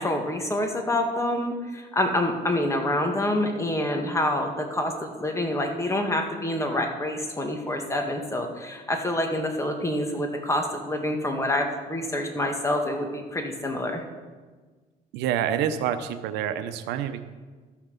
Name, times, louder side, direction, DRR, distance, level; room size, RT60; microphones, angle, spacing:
voice 1, 0.0-14.0, left 1 dB, 15° left, 3 dB, 1.7 m, -27 dB
voice 2, 15.1-17.2, right 9 dB, 90° right, 10 dB, 0.7 m, -27 dB
13.0 x 5.9 x 6.7 m, 1.4 s
cardioid pair, 110°, 17 cm